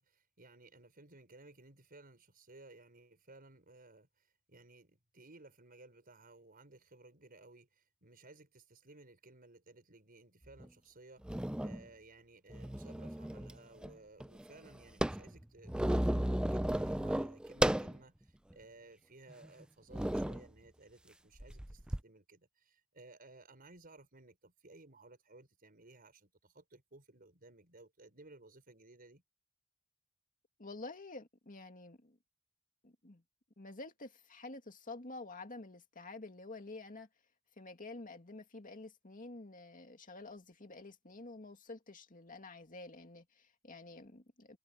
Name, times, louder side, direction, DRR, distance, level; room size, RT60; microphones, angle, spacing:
voice 1, 0.0-4.1 4.5-29.2, right 2 dB, 45° right, 5.1 m, -58 dB
sound 1, 10.6-10.7 11.2-11.8 12.5-13.6 13.8-13.9 14.2-18.0 18.5-18.6 19.3-19.5 19.9-20.4 21.4-22.0, right 1 dB, 5° right, 0.4 m, -34 dB
voice 2, 30.6-32.2 32.8-33.2 33.6-37.1 37.6-44.6, left 2 dB, 40° left, 2.3 m, -49 dB
head